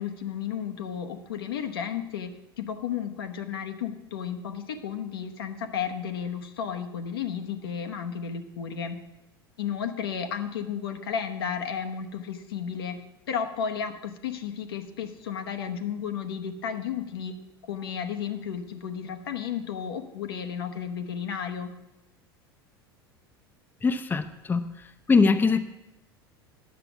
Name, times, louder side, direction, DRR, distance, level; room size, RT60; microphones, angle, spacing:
voice 1, 0.0-2.3 2.6-9.0 9.6-13.0 13.3-17.3 17.6-21.7, left 7 dB, 70° left, 6 dB, 1.0 m, -33 dB
voice 2, 23.8-24.7 25.1-25.6, left 4 dB, 15° left, 9 dB, 0.6 m, -22 dB
10.0 x 6.8 x 7.0 m, 0.93 s
figure-of-eight pair, 75°, 13 cm